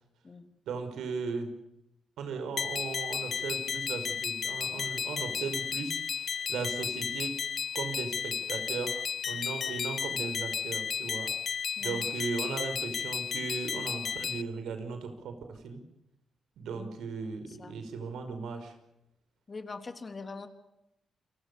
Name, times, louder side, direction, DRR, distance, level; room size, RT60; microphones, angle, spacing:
voice 1, 0.7-1.6 2.2-7.4 7.7-11.3 11.8-15.8 16.6-18.7, right 5 dB, 90° right, 8 dB, 5.5 m, -37 dB
sound 1, 2.6-14.4, left 7 dB, 55° left, 0.9 m, -33 dB
voice 2, 19.5-20.5, left 4 dB, 35° left, 8 dB, 3.3 m, -42 dB
29.0 x 22.5 x 7.0 m, 0.85 s
cardioid pair, 100°, 0 cm